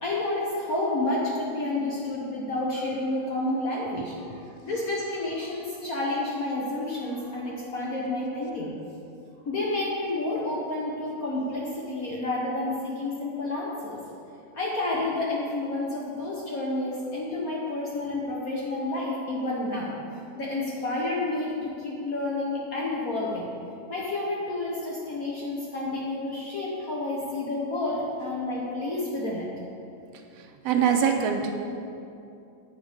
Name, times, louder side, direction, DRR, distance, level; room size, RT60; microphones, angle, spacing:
voice 1, 0.0-8.7 9.4-14.0 14.5-19.9 20.4-23.5 23.9-29.5, left 2 dB, 85° left, -4 dB, 0.7 m, -30 dB
voice 2, 30.4-31.5, right 7 dB, 75° right, 4 dB, 1.5 m, -24 dB
9.5 x 8.1 x 5.0 m, 2.6 s
omnidirectional pair, 3.3 m